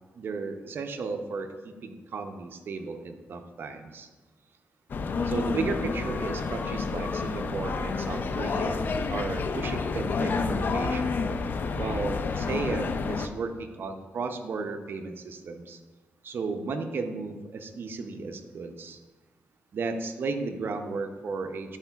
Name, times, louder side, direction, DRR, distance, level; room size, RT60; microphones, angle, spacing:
voice 1, 0.1-4.1 5.2-8.8 9.1-11.2 11.8-15.8 16.2-19.0 19.7-21.8, right 4 dB, 60° right, 7 dB, 0.6 m, -34 dB
sound 1, 4.9-13.3, left 4 dB, 50° left, 0.4 m, -29 dB
9.9 x 4.5 x 2.3 m, 1.2 s
cardioid pair, 105°, 4 cm